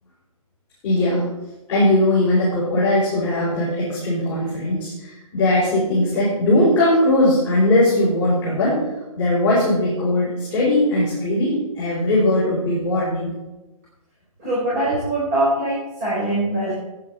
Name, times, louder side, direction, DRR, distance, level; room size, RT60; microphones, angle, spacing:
voice 1, 0.8-1.3 1.7-8.8 9.1-13.3, left 1 dB, 10° left, -13 dB, 4.7 m, -19 dB
voice 2, 14.4-16.7, right 1 dB, 25° right, -7 dB, 3.9 m, -22 dB
15.5 x 9.5 x 4.3 m, 1.0 s
hypercardioid pair, 175°, 18 cm